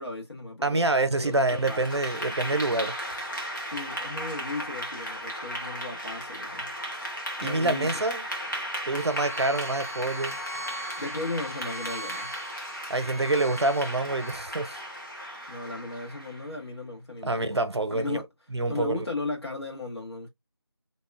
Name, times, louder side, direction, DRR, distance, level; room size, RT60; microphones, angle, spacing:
voice 1, 0.0-1.9 3.7-6.8 7.4-8.0 11.0-12.4 15.5-17.6 17.9-18.3 18.7-20.3, left 2 dB, 70° left, 1.5 m, -36 dB
voice 2, 0.6-3.2 7.4-8.2 8.9-10.4 12.9-14.8 17.2-18.2 18.5-19.1, right 2 dB, 75° right, 0.6 m, -26 dB
Clapping / Applause, 1.3-16.5, equal, 45° left, 1.1 m, -36 dB
Bowed string instrument, 8.9-14.3, right 1 dB, 35° right, 0.3 m, -42 dB
2.8 x 2.2 x 2.3 m
figure-of-eight pair, 175°, 14 cm